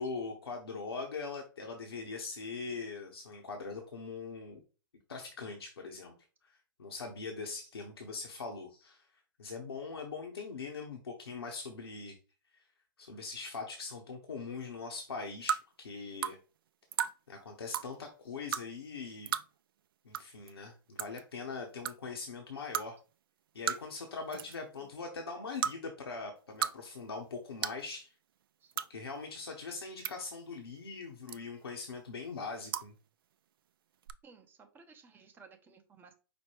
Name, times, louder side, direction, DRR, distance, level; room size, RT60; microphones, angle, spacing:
voice 1, 0.0-4.6 5.1-6.1 6.4-6.5 6.8-9.1 9.4-12.2 12.5-12.6 13.0-16.4 17.3-19.3 20.0-23.0 23.5-28.1 28.9-32.9, left 4 dB, 85° left, 2 dB, 0.9 m, -41 dB
sound 1, 15.5-15.6 16.2-16.3 16.9-17.1 17.7-17.9 18.5-18.6 19.3-19.4 20.1-20.2 20.5-20.6 21.0-21.2 21.8-21.9 22.7-22.9 23.7-24.0 24.3-24.6 25.6-25.7 26.4-26.7 27.0-27.1 27.6-27.8 28.7-28.9 29.7-30.1 31.3-31.6 32.7-32.9 34.0-34.1, right 9 dB, 65° right, 0.4 m, -33 dB
voice 2, 34.2-36.1, right 5 dB, 15° right, 5 dB, 0.7 m, -57 dB
5.2 x 2.2 x 4.4 m, 0.35 s
hypercardioid pair, 120°, 12 cm